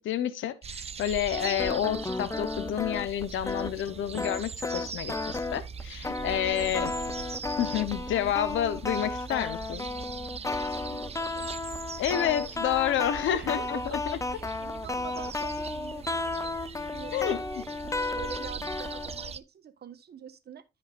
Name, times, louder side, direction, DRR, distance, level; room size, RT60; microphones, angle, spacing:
voice 1, 0.0-6.9 7.6-9.9 12.0-14.0 17.1-17.4, left 11 dB, 80° left, 1.0 m, -29 dB
sound 1, 0.6-19.4, right 6 dB, 30° right, 0.5 m, -41 dB
sound 2, 1.3-19.3, left 3 dB, 15° left, 0.7 m, -34 dB
voice 2, 6.4-6.9 10.6-11.6 13.3-14.0 14.3-16.5 16.9-20.6, right 8 dB, 55° right, 1.4 m, -45 dB
15.5 x 5.7 x 2.5 m
cardioid pair, 90°, 20 cm